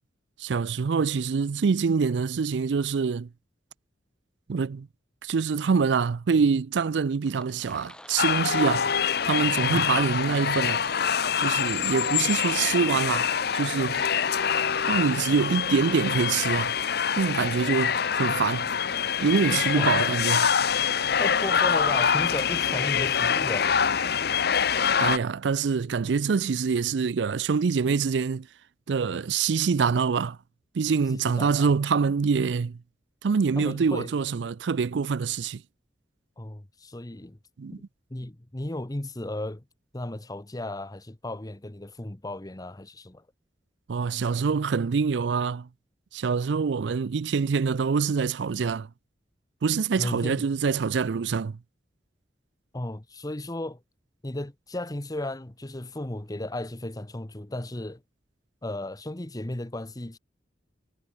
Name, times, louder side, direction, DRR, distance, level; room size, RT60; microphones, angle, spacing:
voice 1, 0.4-3.3 4.5-4.9 5.2-8.9 9.2-10.8 11.4-14.0 14.9-16.7 17.2-18.7 19.2-20.5 25.0-28.5 28.9-30.4 30.7-32.8 33.2-35.6 37.6-37.8 43.9-45.7 46.1-48.9 49.6-51.6, right 5 dB, 75° right, 0.4 m, -25 dB
sound 1, 7.2-20.2, left 1 dB, 5° left, 5.5 m, -48 dB
sound 2, 8.2-25.2, left 7 dB, 60° left, 1.0 m, -25 dB
voice 2, 21.2-23.7 31.1-31.7 33.6-34.1 36.4-37.4 38.1-39.6 39.9-43.2 50.0-50.4 52.7-53.8 54.2-58.0 58.6-60.2, left 1 dB, 20° left, 1.0 m, -35 dB
head